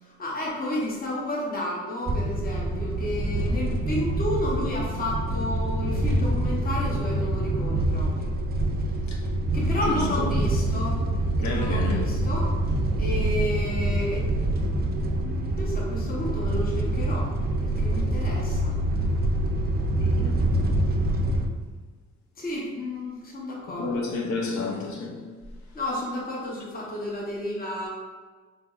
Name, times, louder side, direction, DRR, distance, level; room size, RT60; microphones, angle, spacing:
voice 1, 0.0-8.3 9.5-11.0 11.4-12.5 13.0-14.3 14.7-17.3 17.6-18.8 22.4-23.9 25.7-27.9, left 1 dB, 30° left, 0.9 m, -32 dB
sound 1, 2.1-21.5, right 1 dB, 30° right, 0.5 m, -26 dB
voice 2, 9.8-10.3 11.4-12.3 20.0-20.5 23.7-25.3, left 3 dB, 70° left, 0.8 m, -31 dB
3.9 x 3.4 x 2.4 m
cardioid pair, 90°, 30 cm